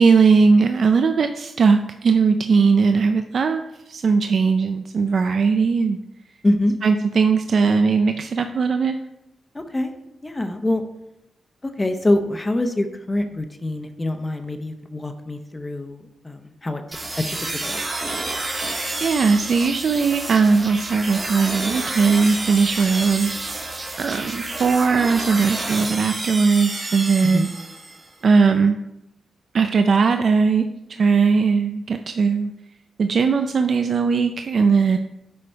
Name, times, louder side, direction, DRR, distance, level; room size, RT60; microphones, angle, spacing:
voice 1, 0.0-3.6 3.9-6.0 6.8-8.9 19.0-23.6 24.0-27.5 28.2-28.8 29.5-30.6 30.9-32.5 33.0-35.0, right 5 dB, 60° right, 7 dB, 0.4 m, -19 dB
voice 2, 9.5-9.9 10.2-10.8 11.6-16.8 17.2-17.3 17.6-17.8 27.2-27.5, left 1 dB, 20° left, 7 dB, 0.9 m, -24 dB
sound 1, 16.9-28.1, right 2 dB, 40° right, 1.5 m, -29 dB
7.8 x 5.0 x 4.6 m, 0.89 s
cardioid pair, 75°, 0 cm